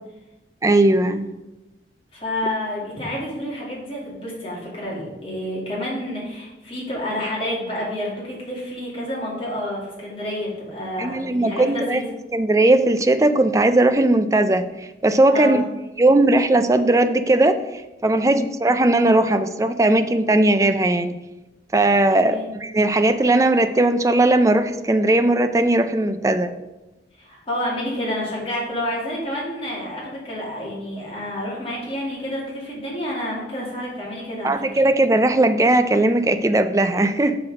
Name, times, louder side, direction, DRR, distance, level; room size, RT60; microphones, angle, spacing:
voice 1, 0.6-1.3 11.0-12.0 12.3-14.7 15.0-15.6 16.0-21.1 21.7-26.5 34.4-37.4, right 2 dB, 20° right, 9 dB, 0.4 m, -18 dB
voice 2, 2.1-12.1 15.3-15.6 18.2-18.4 22.2-22.5 27.2-34.8, left 1 dB, 30° left, -5 dB, 2.5 m, -29 dB
6.2 x 6.0 x 4.8 m, 1.0 s
head